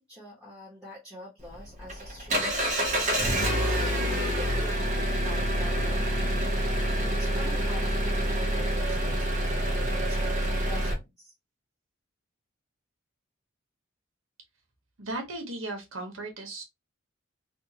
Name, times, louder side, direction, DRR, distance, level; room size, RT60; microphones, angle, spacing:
voice 1, 0.0-3.4 3.7-6.5 6.9-11.3, equal, 5° right, 1.3 m, -46 dB
Engine, 1.4-10.9, right 1 dB, 35° right, 0.9 m, -27 dB
voice 2, 15.0-16.6, right 2 dB, 75° right, 1.2 m, -36 dB
3.5 x 2.4 x 2.9 m
head